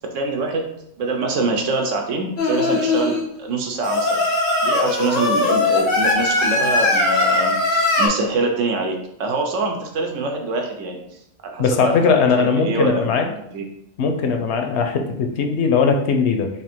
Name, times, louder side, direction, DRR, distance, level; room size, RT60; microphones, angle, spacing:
voice 1, 0.1-0.6 1.0-4.2 4.6-11.0 11.4-13.7, right 3 dB, 80° right, 3 dB, 1.1 m, -25 dB
Singing, 2.4-3.2 3.8-8.1, left 2 dB, 90° left, 1.5 m, -19 dB
voice 2, 11.6-13.3 14.0-16.5, left 5 dB, 70° left, 4 dB, 0.8 m, -19 dB
3.5 x 2.6 x 4.3 m, 0.76 s
omnidirectional pair, 1.3 m